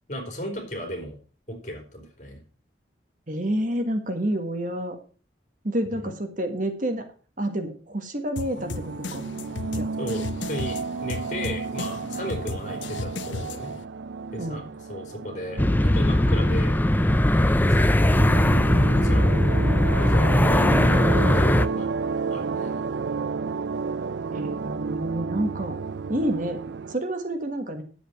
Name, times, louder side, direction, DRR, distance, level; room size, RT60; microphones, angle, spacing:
voice 1, 0.1-1.2 1.5-2.4 5.9-6.1 10.0-13.7 14.3-14.6 14.9-16.8 17.4-19.4 20.0-21.9 22.3-22.8, equal, 40° left, 3 dB, 3.9 m, -35 dB
voice 2, 3.3-5.0 5.6-7.1 7.4-9.2 9.7-9.9 14.4-14.6 24.3-25.7 26.1-27.8, right 1 dB, 45° right, 6 dB, 1.7 m, -29 dB
sound 1, 8.4-13.8, left 4 dB, 85° left, 0.7 m, -36 dB
sound 2, 8.6-27.0, right 5 dB, 75° right, 0.4 m, -32 dB
sound 3, 15.6-21.7, left 1 dB, 10° left, 0.4 m, -19 dB
10.0 x 8.0 x 6.0 m, 0.38 s
head